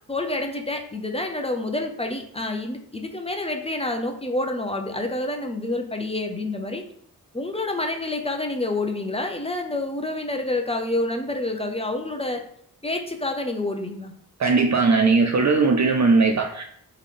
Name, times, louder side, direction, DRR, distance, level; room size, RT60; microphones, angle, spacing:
voice 1, 0.1-6.8 7.3-12.4 12.8-14.1, left 2 dB, 15° left, 4 dB, 0.7 m, -28 dB
voice 2, 14.4-16.6, right 4 dB, 50° right, 3 dB, 0.5 m, -19 dB
3.9 x 3.3 x 3.7 m, 0.66 s
cardioid pair, 65°, 37 cm